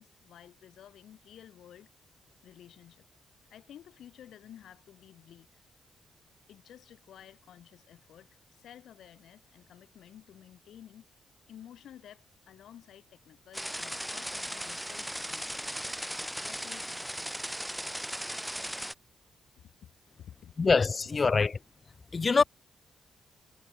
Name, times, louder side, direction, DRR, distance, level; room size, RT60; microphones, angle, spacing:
voice 1, 0.0-1.9 2.4-3.0 3.5-5.5 6.5-11.1 11.5-15.7 16.4-17.1 19.6-20.5, left 10 dB, 80° left, 7.1 m, -53 dB
sound 1, 13.5-18.9, equal, 5° right, 1.8 m, -37 dB
voice 2, 20.6-21.5 22.1-22.4, left 4 dB, 35° left, 0.3 m, -24 dB
cardioid pair, 100°, 0 cm